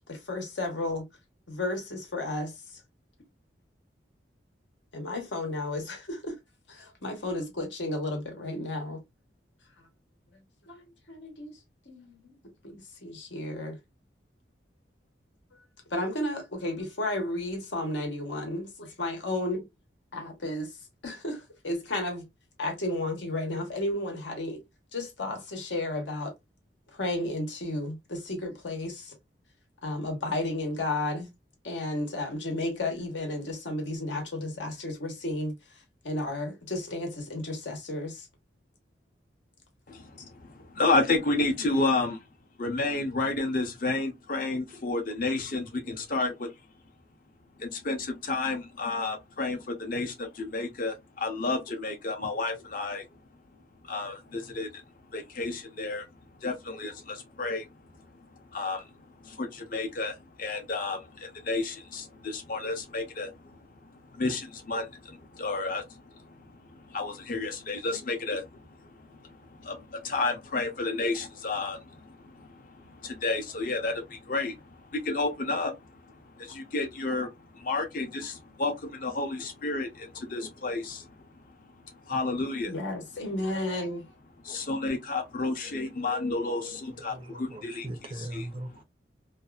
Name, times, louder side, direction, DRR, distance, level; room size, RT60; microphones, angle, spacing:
voice 1, 0.1-1.0 1.5-2.5 4.9-6.4 6.7-9.0 10.7-10.8 11.1-11.5 11.9-12.3 12.6-13.8 15.9-19.6 20.1-20.7 21.0-22.2 22.6-24.6 24.9-26.3 26.9-29.1 29.8-31.3 31.6-35.6 36.0-38.3 82.6-84.0, left 1 dB, 80° left, 1.0 m, -33 dB
voice 2, 39.9-42.2 42.6-46.5 47.6-53.0 53.8-54.8 55.1-56.0 56.4-57.7 58.5-58.8 59.2-63.3 64.1-65.8 66.8-68.6 69.6-74.6 74.9-75.7 76.4-77.3 77.5-81.1 82.1-82.7 84.4-87.9 88.2-88.5, left 3 dB, 50° left, 0.7 m, -31 dB
voice 3, 87.1-88.8, right 1 dB, 30° right, 0.4 m, -39 dB
2.6 x 2.4 x 2.2 m
head